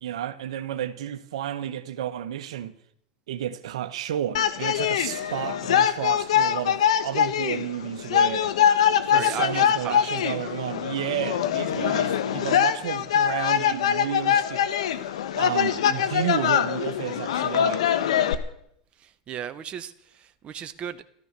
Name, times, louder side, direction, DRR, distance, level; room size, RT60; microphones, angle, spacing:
voice 1, 0.0-2.8 3.3-8.5 9.1-14.8 15.3-17.9, right 11 dB, 80° right, 1.3 m, -32 dB
sound 1, 4.3-18.3, left 9 dB, 80° left, 1.3 m, -23 dB
voice 2, 9.0-10.0 11.7-12.0 19.0-21.0, right 8 dB, 35° right, 1.0 m, -36 dB
15.0 x 13.5 x 6.8 m
hypercardioid pair, 95°, 3 cm